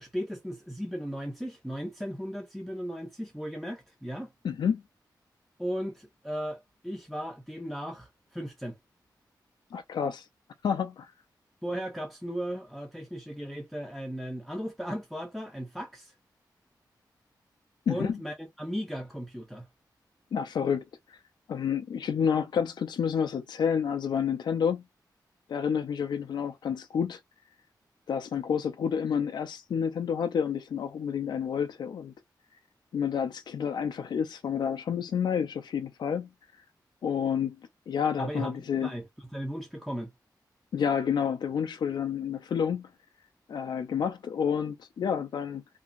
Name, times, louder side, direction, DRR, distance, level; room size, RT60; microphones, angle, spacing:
voice 1, 0.0-4.3 5.6-8.8 11.6-16.1 17.9-19.7 38.2-38.5 38.8-39.1 39.3-40.1, equal, ahead, 0.5 m, -36 dB
voice 2, 4.4-4.8 9.7-10.3 10.6-11.1 17.9-18.2 20.3-21.2 21.5-24.8 25.5-27.2 28.1-32.1 32.9-36.3 37.0-37.6 37.9-38.9 40.7-42.9 43.5-45.6, left 7 dB, 75° left, 0.4 m, -29 dB
2.8 x 2.5 x 2.4 m
wide cardioid pair, 120°, 7 cm